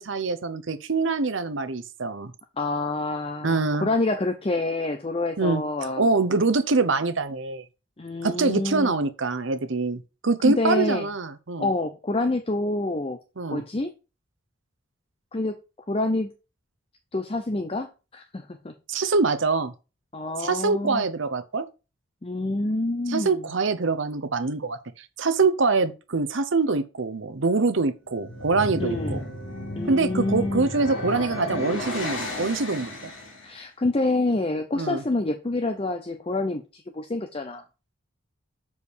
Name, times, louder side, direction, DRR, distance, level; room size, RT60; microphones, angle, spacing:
voice 1, 0.0-2.3 3.4-3.9 5.4-7.6 8.2-11.7 13.4-13.6 18.9-19.7 20.4-21.7 23.1-29.2 29.9-33.0 34.7-35.0, right 3 dB, 70° right, 0.8 m, -24 dB
voice 2, 2.6-6.1 8.0-8.9 10.4-11.1 11.6-13.2 13.5-13.9 15.3-15.6 15.9-16.3 17.1-18.7 20.1-21.1 22.2-23.4 28.8-29.2 29.8-30.7 33.4-37.6, left 2 dB, 30° left, 0.6 m, -27 dB
sound 1, 28.1-33.5, left 1 dB, 75° left, 2.8 m, -33 dB
7.0 x 4.8 x 4.9 m
head